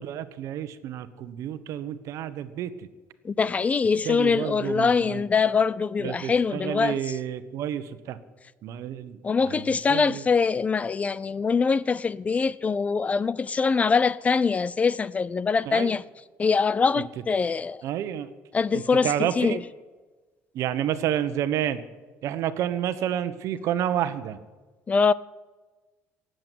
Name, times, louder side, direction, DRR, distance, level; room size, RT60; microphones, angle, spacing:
voice 1, 0.0-2.9 4.0-5.2 6.0-8.2 8.6-9.2 9.4-10.2 15.7-15.9 17.8-18.3 18.7-19.6 20.5-21.8 22.2-24.4, right 10 dB, 65° right, 1.1 m, -30 dB
voice 2, 3.2-7.0 9.2-16.0 16.4-17.8 18.5-19.6 24.9-25.1, left 5 dB, 25° left, 0.4 m, -23 dB
18.0 x 7.9 x 9.3 m
cardioid pair, 120°, 6 cm